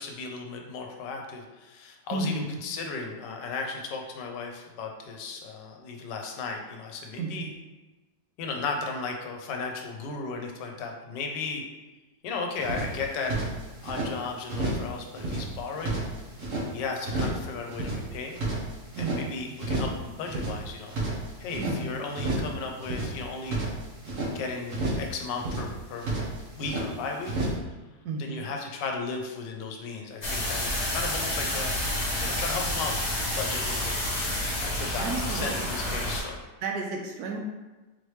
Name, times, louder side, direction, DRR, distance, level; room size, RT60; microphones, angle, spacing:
voice 1, 0.0-7.5 8.4-11.7 12.2-13.3 13.8-16.0 16.7-18.4 19.0-20.9 21.4-23.6 24.3-26.2 26.6-27.3 28.2-31.8 32.2-36.4, left 4 dB, 80° left, 2 dB, 1.3 m, -35 dB
voice 2, 2.1-2.6 7.2-7.5 19.0-19.3 21.6-22.0 28.0-28.5 35.0-35.7 36.6-37.4, right 3 dB, 70° right, 0 dB, 1.0 m, -32 dB
sound 1, 12.6-14.1 14.5-14.9 15.1-16.7 17.0-17.4 17.7-19.2 19.6-20.0 20.2-21.8 22.1-22.5 22.8-24.3 24.7-25.1 25.3-26.9 27.2-27.5, right 2 dB, 50° right, 1.1 m, -31 dB
sound 2, 30.2-36.2, left 1 dB, 40° left, 0.6 m, -29 dB
4.2 x 3.2 x 3.1 m, 1.2 s
omnidirectional pair, 1.9 m